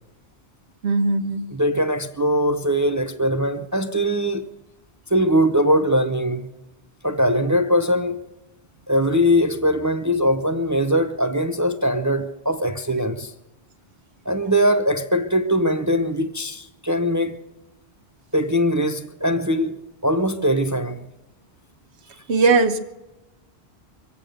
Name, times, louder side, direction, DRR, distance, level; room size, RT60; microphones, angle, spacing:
voice 1, 0.8-1.4 22.3-22.8, right 3 dB, 90° right, 1.3 m, -18 dB
voice 2, 1.5-4.5 5.1-6.5 7.0-8.2 8.9-13.3 14.3-17.4 18.3-21.1, equal, 25° right, 0.4 m, -21 dB
24.5 x 8.3 x 6.5 m
omnidirectional pair, 1.1 m